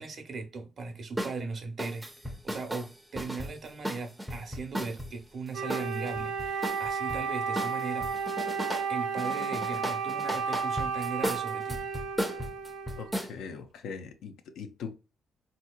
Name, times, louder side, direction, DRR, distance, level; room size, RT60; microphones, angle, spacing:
voice 1, 0.0-2.1 2.4-8.1 8.9-11.9, right 4 dB, 50° right, 0.8 m, -38 dB
sound 1, 1.2-1.4 1.8-5.1 5.7-7.2 7.5-8.9 9.2-13.3, equal, 5° right, 0.5 m, -35 dB
Wind instrument woodwind instrument, 5.5-13.2, right 5 dB, 85° right, 0.5 m, -33 dB
voice 2, 13.0-14.9, left 6 dB, 80° left, 0.5 m, -41 dB
3.6 x 2.8 x 2.3 m
cardioid pair, 90°, 0 cm